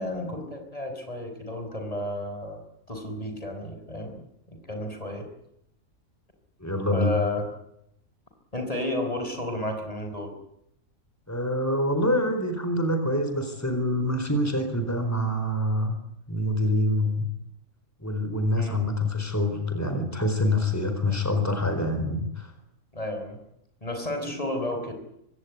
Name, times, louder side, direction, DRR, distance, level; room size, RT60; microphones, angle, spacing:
voice 1, 0.0-2.6 2.9-4.1 4.5-5.3 6.9-7.5 8.5-10.3 18.5-18.8 22.9-23.4 23.8-24.9, left 1 dB, 25° left, 5 dB, 5.1 m, -32 dB
voice 2, 6.6-7.2 11.3-16.0 16.3-17.3 18.0-22.5, left 1 dB, 10° left, 7 dB, 4.4 m, -26 dB
25.0 x 17.5 x 9.6 m, 0.77 s
omnidirectional pair, 1.4 m